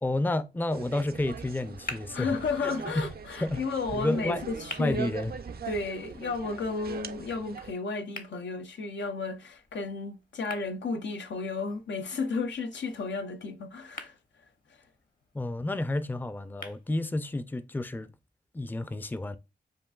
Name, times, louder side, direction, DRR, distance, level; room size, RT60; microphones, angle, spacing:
voice 1, 0.0-2.4 2.6-2.7 3.4-3.6 3.9-4.4 4.8-5.3 15.3-18.1 18.5-19.4, left 2 dB, 10° left, 0.4 m, -30 dB
sound 1, 0.7-7.7, right 6 dB, 60° right, 0.4 m, -41 dB
sound 2, 1.4-17.4, left 2 dB, 50° left, 1.0 m, -49 dB
voice 2, 2.1-5.1 5.7-14.1, left 4 dB, 85° left, 0.6 m, -33 dB
7.4 x 2.5 x 2.3 m
cardioid pair, 55°, 18 cm